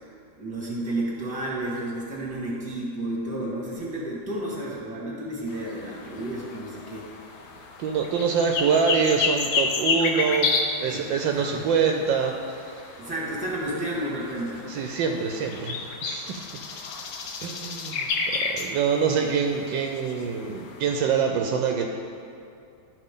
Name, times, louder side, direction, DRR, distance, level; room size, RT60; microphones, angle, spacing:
voice 1, 0.4-7.1 10.9-11.7 13.0-14.6, right 1 dB, 5° right, -5 dB, 1.4 m, -31 dB
sound 1, 5.5-21.0, left 4 dB, 65° left, 1.0 m, -31 dB
voice 2, 7.8-10.5 10.8-13.0 14.7-16.5 17.4-21.8, right 6 dB, 75° right, 3 dB, 1.2 m, -25 dB
12.0 x 5.1 x 3.7 m, 2.5 s
omnidirectional pair, 2.2 m